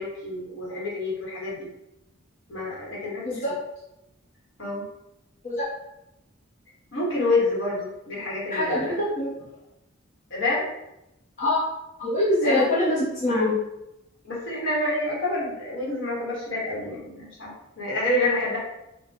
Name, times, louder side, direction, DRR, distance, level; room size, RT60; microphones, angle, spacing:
voice 1, 0.0-1.7 2.5-3.5 4.6-4.8 6.9-9.0 10.3-10.6 12.4-12.6 14.2-17.5 17.8-18.6, left 2 dB, 65° left, -4 dB, 1.5 m, -27 dB
voice 2, 3.2-3.6 5.4-5.7 8.5-9.3 11.4-11.6 12.0-13.6, left 1 dB, 40° left, -8 dB, 1.0 m, -24 dB
3.7 x 2.5 x 4.3 m, 0.89 s
head